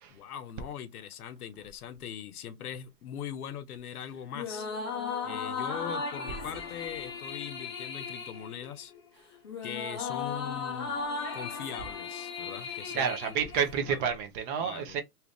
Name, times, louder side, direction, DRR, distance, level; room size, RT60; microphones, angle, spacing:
voice 1, 0.1-4.7 5.2-8.9 9.6-11.0 11.3-13.4 13.9-14.0 14.6-15.0, left 9 dB, 65° left, 0.7 m, -41 dB
sound 1, 4.3-14.0, left 5 dB, 20° left, 0.3 m, -37 dB
voice 2, 12.9-15.0, right 7 dB, 30° right, 0.7 m, -30 dB
2.8 x 2.4 x 3.4 m
hypercardioid pair, 115°, 48 cm